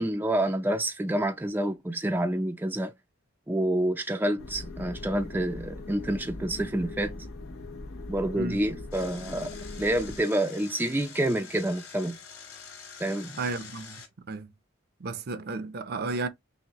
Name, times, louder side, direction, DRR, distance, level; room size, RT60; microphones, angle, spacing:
voice 1, 0.0-2.9 3.5-7.1 8.1-9.5 9.8-12.2 13.0-13.4, right 1 dB, 10° right, 0.4 m, -28 dB
sound 1, 4.4-10.2, left 2 dB, 70° left, 0.8 m, -40 dB
Engine, 8.9-14.1, left 6 dB, 85° left, 2.3 m, -46 dB
voice 2, 13.4-14.0 14.3-14.5 15.0-16.3, right 3 dB, 50° right, 0.6 m, -33 dB
5.7 x 2.1 x 2.9 m
head